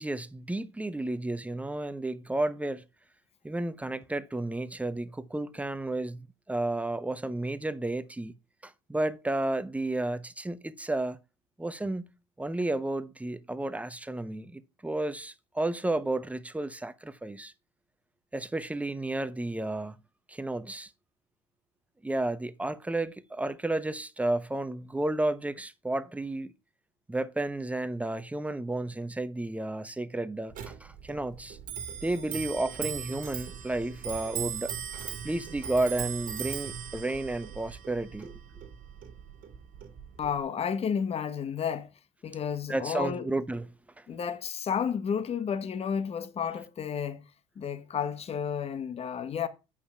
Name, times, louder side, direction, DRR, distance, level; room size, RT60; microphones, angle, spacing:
voice 1, 0.0-2.8 3.4-6.2 6.5-8.3 8.6-11.2 11.6-12.1 12.4-17.5 18.3-20.0 20.3-20.9 22.0-26.5 27.1-31.6 32.0-34.8 35.2-38.3 42.7-43.7 44.0-44.1, right 2 dB, 10° right, 1.0 m, -32 dB
Clock, 30.5-40.4, right 9 dB, 60° right, 1.8 m, -39 dB
voice 2, 40.2-41.9 42.2-43.3 44.1-47.2 47.6-49.5, left 7 dB, 40° left, 1.2 m, -31 dB
8.5 x 5.6 x 5.7 m
hypercardioid pair, 75°, 16 cm